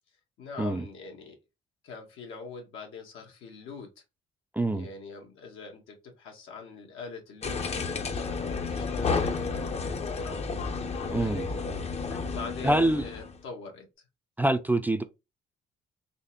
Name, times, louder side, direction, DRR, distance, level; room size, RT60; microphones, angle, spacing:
voice 1, 0.4-1.4 1.8-3.9 4.7-10.7 11.0-11.9 12.3-13.9, left 4 dB, 85° left, 1.4 m, -43 dB
voice 2, 4.5-4.9 11.1-11.5 12.6-13.0 14.4-15.0, right 1 dB, 10° right, 0.4 m, -25 dB
sound 1, 7.4-13.4, left 4 dB, 35° left, 0.6 m, -31 dB
4.1 x 2.9 x 2.7 m
cardioid pair, 90°, 20 cm